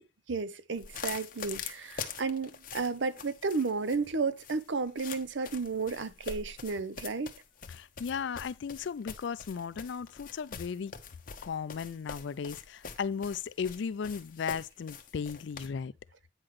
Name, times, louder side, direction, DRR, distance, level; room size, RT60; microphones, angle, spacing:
voice 1, 0.3-7.3, right 4 dB, 75° right, 0.7 m, -33 dB
sound 1, 0.8-15.7, left 6 dB, 45° left, 0.9 m, -44 dB
voice 2, 7.7-10.9 11.4-15.9, left 6 dB, 70° left, 0.4 m, -36 dB
8.9 x 5.8 x 3.1 m
head